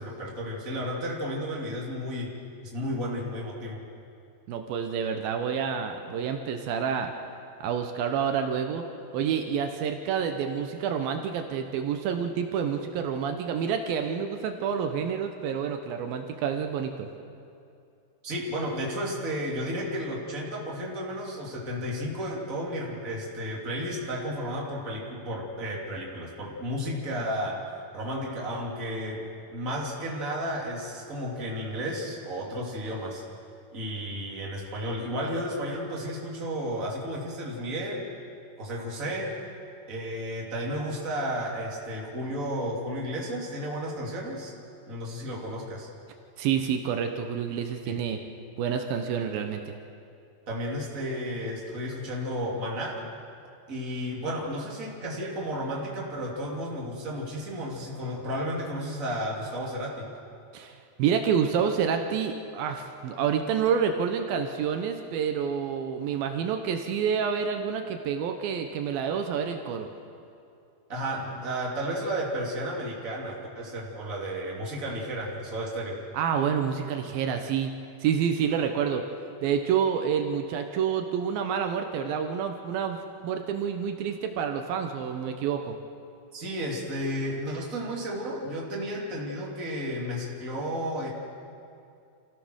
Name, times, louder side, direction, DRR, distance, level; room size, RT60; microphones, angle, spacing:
voice 1, 0.0-2.3 2.6-3.8 18.2-27.6 27.9-29.2 29.5-33.2 33.7-38.1 38.6-39.3 39.9-44.5 44.9-45.9 47.8-48.0 50.5-53.1 53.7-60.1 70.9-76.0 86.3-91.1, equal, 25° right, -3 dB, 2.8 m, -33 dB
voice 2, 4.5-7.1 7.6-8.8 9.1-17.1 46.4-48.2 48.6-49.8 60.5-69.9 76.1-77.7 78.0-79.0 79.4-83.0 83.2-85.8, right 7 dB, 80° right, 5 dB, 2.7 m, -28 dB
27.5 x 15.5 x 6.4 m, 2.5 s
omnidirectional pair, 4.2 m